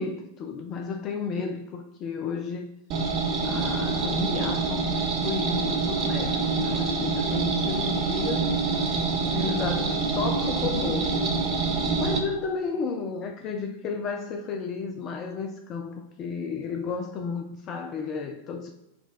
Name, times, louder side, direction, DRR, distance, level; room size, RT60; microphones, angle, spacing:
voice 1, 0.0-2.7 3.4-8.5 9.2-11.2 12.0-18.7, left 5 dB, 35° left, 0.4 m, -32 dB
sound 1, 2.9-12.2, right 4 dB, 35° right, 0.7 m, -26 dB
4.2 x 2.3 x 4.0 m
figure-of-eight pair, 90°, 0 cm